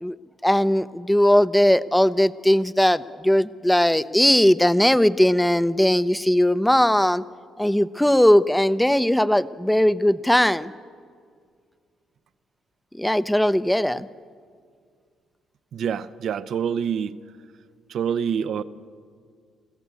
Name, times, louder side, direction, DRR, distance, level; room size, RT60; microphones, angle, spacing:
voice 1, 0.4-7.2 7.6-10.7 13.0-14.1, left 1 dB, 5° left, 14 dB, 0.7 m, -19 dB
voice 2, 15.7-17.2 17.9-18.6, right 7 dB, 70° right, 13 dB, 0.8 m, -26 dB
27.5 x 14.5 x 8.3 m, 2.1 s
cardioid pair, 90°, 0 cm